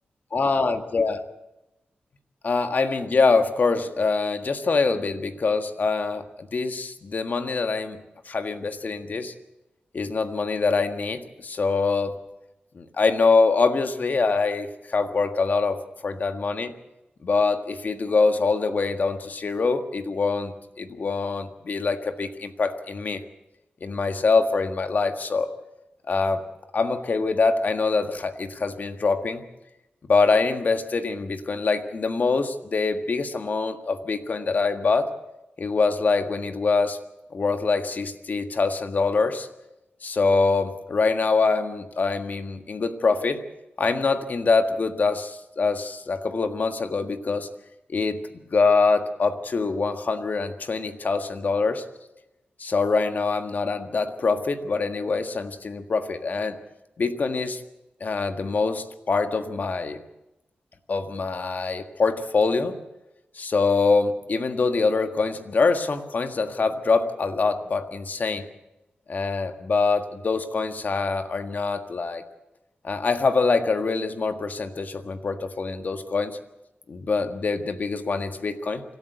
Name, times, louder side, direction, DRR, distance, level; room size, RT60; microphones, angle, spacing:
voice 1, 0.3-1.2 2.4-9.3 9.9-12.2 12.7-16.7 17.2-23.2 23.8-25.5 26.1-26.4 26.7-29.4 30.1-35.1 35.6-37.0 37.3-39.5 40.0-43.4 43.8-47.5 47.9-51.8 52.6-56.6 57.0-57.6 58.0-60.0 60.9-62.8 63.3-68.5 69.1-72.2 72.8-76.4 76.9-78.8, left 4 dB, 55° left, 8 dB, 1.6 m, -24 dB
25.5 x 13.0 x 8.1 m, 0.94 s
cardioid pair, 85°, 4 cm